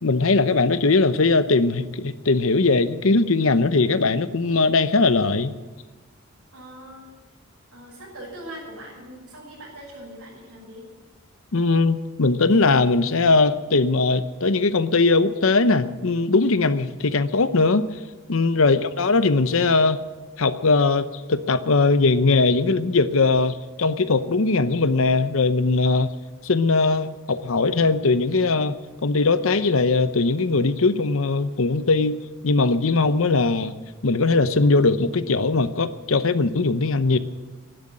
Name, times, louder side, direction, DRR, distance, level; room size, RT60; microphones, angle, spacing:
voice 1, 0.0-5.5 11.5-17.9 18.3-20.0 20.4-26.1 26.4-28.8 29.0-32.2 32.4-33.8 34.0-37.2, left 3 dB, 65° left, 13 dB, 0.8 m, -20 dB
voice 2, 6.5-7.1 7.7-10.8 18.6-18.9, right 1 dB, 80° right, -9 dB, 6.1 m, -41 dB
11.5 x 11.5 x 10.0 m, 1.2 s
head